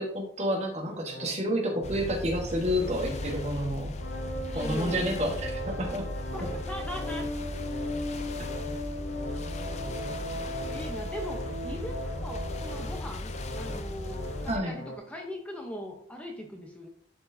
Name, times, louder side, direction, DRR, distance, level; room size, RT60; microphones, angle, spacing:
voice 1, 0.0-3.9 4.5-6.0 14.5-14.7, equal, 40° right, 0 dB, 1.4 m, -29 dB
sound 1, 1.0-14.9, left 1 dB, 80° left, 1.0 m, -38 dB
sound 2, 1.8-14.6, left 1 dB, 40° left, 0.5 m, -37 dB
voice 2, 4.5-5.2 6.3-7.3 10.7-16.9, left 1 dB, 10° left, 1 dB, 0.8 m, -40 dB
11.0 x 4.5 x 2.7 m, 0.63 s
head